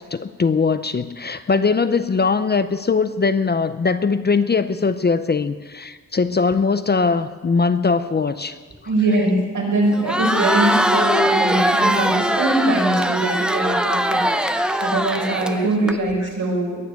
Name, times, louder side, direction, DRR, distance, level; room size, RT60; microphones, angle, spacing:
voice 1, 0.0-8.6 15.8-16.0, left 4 dB, 30° left, 12 dB, 0.6 m, -20 dB
voice 2, 8.8-14.2 14.8-16.8, right 2 dB, 70° right, -2 dB, 5.2 m, -22 dB
Crowd, 9.9-15.9, equal, 5° right, 0.7 m, -21 dB
21.0 x 7.6 x 8.3 m, 1.5 s
wide cardioid pair, 135°, 32 cm